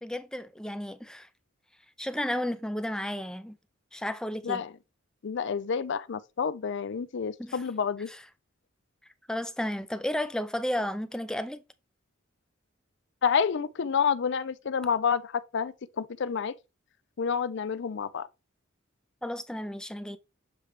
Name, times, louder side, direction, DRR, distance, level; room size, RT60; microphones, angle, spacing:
voice 1, 0.0-1.3 2.0-3.6 3.9-4.6 7.4-7.6 8.1-8.2 9.3-11.6 19.2-20.2, left 1 dB, 5° left, 0.5 m, -33 dB
voice 2, 5.2-8.1 13.2-16.5 17.2-18.3, left 6 dB, 60° left, 0.5 m, -29 dB
7.5 x 3.2 x 4.8 m
head